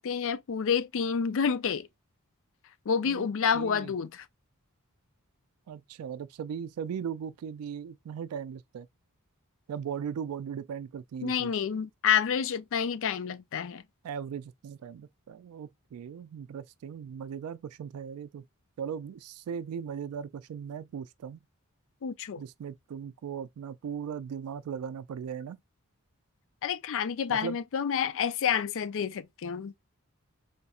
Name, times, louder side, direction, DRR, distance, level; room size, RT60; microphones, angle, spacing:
voice 1, 0.0-1.9 2.9-4.2 11.2-13.8 22.0-22.4 26.6-29.7, left 7 dB, 60° left, 0.4 m, -29 dB
voice 2, 3.5-3.9 5.7-8.9 9.7-11.5 14.0-18.4 18.8-21.4 22.4-25.6 27.3-27.6, right 7 dB, 85° right, 0.3 m, -38 dB
4.1 x 3.2 x 2.3 m
head